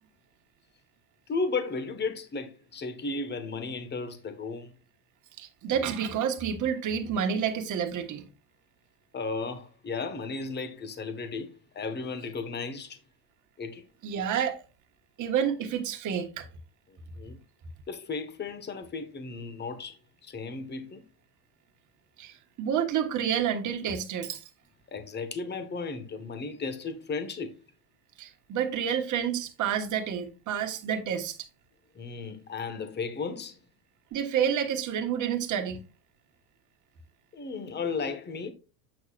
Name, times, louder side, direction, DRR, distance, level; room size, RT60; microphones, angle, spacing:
voice 1, 1.3-4.7 9.1-13.0 13.6-13.8 16.9-17.4 17.9-21.0 24.9-27.6 31.9-33.6 37.3-38.5, left 4 dB, 25° left, 1.4 m, -35 dB
voice 2, 5.4-8.2 14.0-14.6 15.2-16.5 22.2-24.4 28.2-31.4 34.1-35.8, right 8 dB, 45° right, 1.5 m, -29 dB
8.5 x 6.5 x 2.5 m
supercardioid pair, 110°, 43 cm